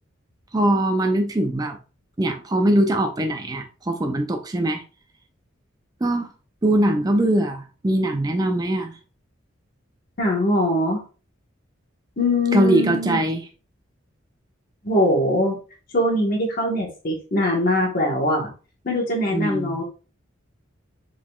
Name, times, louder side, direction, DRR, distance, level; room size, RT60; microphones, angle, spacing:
voice 1, 0.5-1.8 2.2-4.8 6.0-6.3 6.6-8.9 12.5-13.4 19.3-19.8, right 1 dB, 20° right, 5 dB, 0.4 m, -21 dB
voice 2, 10.2-11.0 12.2-13.2 14.8-15.6 15.9-18.5 18.8-19.8, left 1 dB, 45° left, -2 dB, 1.1 m, -22 dB
5.0 x 3.8 x 2.3 m, 0.35 s
head